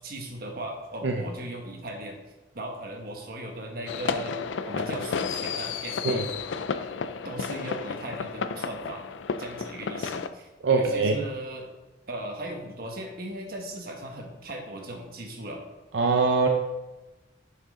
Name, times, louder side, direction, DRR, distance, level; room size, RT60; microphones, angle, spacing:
voice 1, 0.0-2.2 2.5-4.4 4.6-6.3 7.2-9.0 9.4-11.7 12.1-15.6, right 1 dB, 55° right, 2 dB, 1.4 m, -38 dB
sound 1, 3.9-10.3, left 5 dB, 90° left, 0.4 m, -32 dB
voice 2, 10.6-11.2 15.9-16.5, right 3 dB, 75° right, 3 dB, 0.6 m, -22 dB
8.0 x 6.1 x 3.8 m, 1.1 s
head